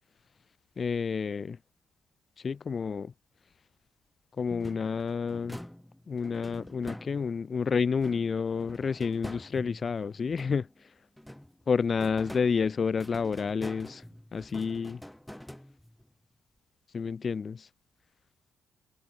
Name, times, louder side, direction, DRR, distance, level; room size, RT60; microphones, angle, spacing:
voice 1, 0.8-1.6 2.4-3.1 4.4-5.6 6.1-10.7 11.7-14.0 14.3-15.0 16.9-17.7, left 5 dB, 40° left, 0.7 m, -29 dB
sound 1, 4.5-7.5 8.0-10.8 11.2-16.1, equal, 5° left, 5.7 m, -46 dB
cardioid pair, 90°, 0 cm